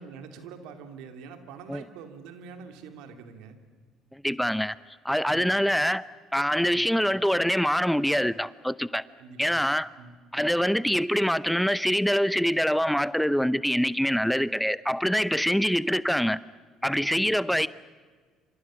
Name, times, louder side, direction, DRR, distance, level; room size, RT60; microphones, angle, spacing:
voice 1, 0.0-3.6 5.2-5.5 6.6-6.8 9.2-9.6 10.0-10.2 17.0-17.3, right 6 dB, 75° right, 2.6 m, -45 dB
voice 2, 4.1-4.8 5.0-9.0 9.4-9.9 10.3-16.4 16.8-17.7, equal, ahead, 0.7 m, -25 dB
27.5 x 26.5 x 6.3 m
hypercardioid pair, 65°, 0 cm